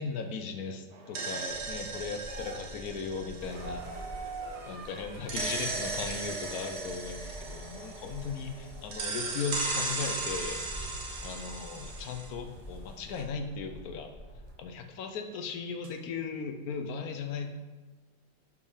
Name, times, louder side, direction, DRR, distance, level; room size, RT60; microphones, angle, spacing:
voice 1, 0.0-3.9 4.7-10.9 11.2-14.1 14.6-17.5, left 5 dB, 70° left, 6 dB, 1.0 m, -37 dB
sound 1, 0.9-4.6 5.3-8.5 8.9-12.3, right 3 dB, 75° right, 1.6 m, -37 dB
sound 2, 1.2-1.6 2.1-13.3 14.5-14.6 15.8-15.9, right 3 dB, 45° right, 0.4 m, -48 dB
sound 3, 1.4-14.5, equal, 15° left, 1.1 m, -47 dB
5.5 x 4.8 x 4.8 m, 1.2 s
omnidirectional pair, 1.9 m